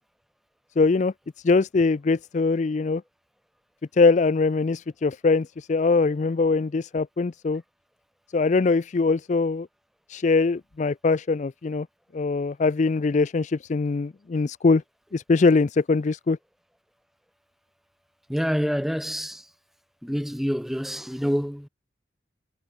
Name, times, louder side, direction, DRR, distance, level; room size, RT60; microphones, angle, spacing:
voice 1, 0.8-1.1 1.4-3.0 3.9-7.6 8.3-9.7 10.1-11.9 12.1-14.8 15.1-16.4, left 4 dB, 40° left, 0.4 m, -22 dB
voice 2, 18.3-19.5 20.0-21.7, equal, ahead, 2.9 m, -27 dB
head